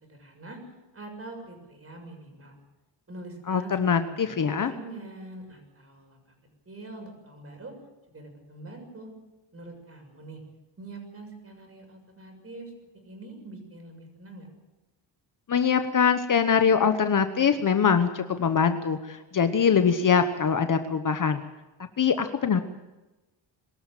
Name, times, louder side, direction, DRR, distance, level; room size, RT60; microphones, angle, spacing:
voice 1, 0.1-2.5 3.1-4.3 4.6-6.2 6.6-7.7 8.1-9.1 9.5-10.4 10.8-14.5, right 2 dB, 30° right, 3 dB, 6.8 m, -44 dB
voice 2, 3.5-4.7 15.5-21.4 22.0-22.6, left 6 dB, 40° left, 8 dB, 1.1 m, -23 dB
22.5 x 13.5 x 9.0 m, 1.1 s
cardioid pair, 135°, 48 cm